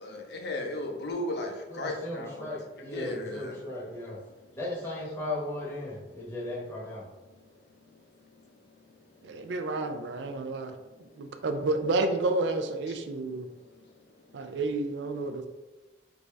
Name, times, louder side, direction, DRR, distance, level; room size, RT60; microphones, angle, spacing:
voice 1, 0.0-2.5 2.9-3.6, left 1 dB, 65° left, 2 dB, 0.6 m, -35 dB
voice 2, 1.7-4.2 4.6-7.0, left 1 dB, 15° left, -6 dB, 0.9 m, -36 dB
voice 3, 9.2-10.7 11.2-13.5 14.3-15.5, right 2 dB, 75° right, 7 dB, 0.4 m, -30 dB
3.5 x 2.6 x 3.1 m, 1.1 s
head